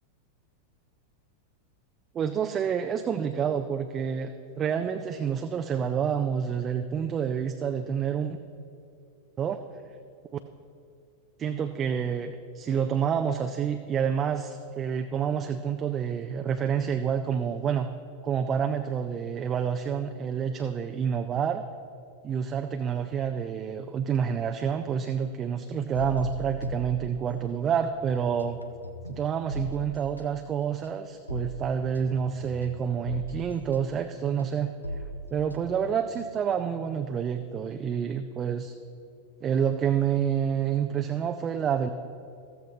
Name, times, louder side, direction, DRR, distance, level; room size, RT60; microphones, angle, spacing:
voice 1, 2.1-4.3 4.6-8.4 9.4-9.6 10.3-10.4 11.4-17.9 18.2-21.6 22.2-28.6 29.1-34.7 35.3-38.7 39.4-41.9, right 7 dB, 25° right, 7 dB, 0.4 m, -28 dB
sound 1, 26.0-27.7 28.0-36.6, equal, 85° left, 0.5 m, -39 dB
14.0 x 14.0 x 3.1 m, 2.5 s
figure-of-eight pair, 90°, 0 cm